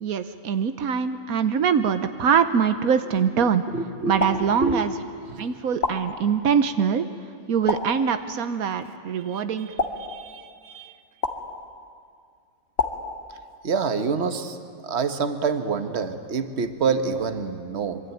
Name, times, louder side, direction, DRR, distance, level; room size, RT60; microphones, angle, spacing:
voice 1, 0.0-3.6 4.0-4.9 5.4-7.1 7.5-9.7, right 7 dB, 85° right, 9 dB, 1.4 m, -23 dB
voice 2, 3.7-4.9 5.2-5.5 10.1-10.3 10.7-10.9 13.6-14.6 14.8-18.0, right 5 dB, 50° right, 8 dB, 1.5 m, -26 dB
sound 1, 4.2-5.1 5.8-6.7 7.7-8.5 9.8-10.7 11.2-12.0 12.8-13.8, left 3 dB, 45° left, 1.9 m, -31 dB
26.0 x 23.5 x 9.3 m, 2.2 s
omnidirectional pair, 1.5 m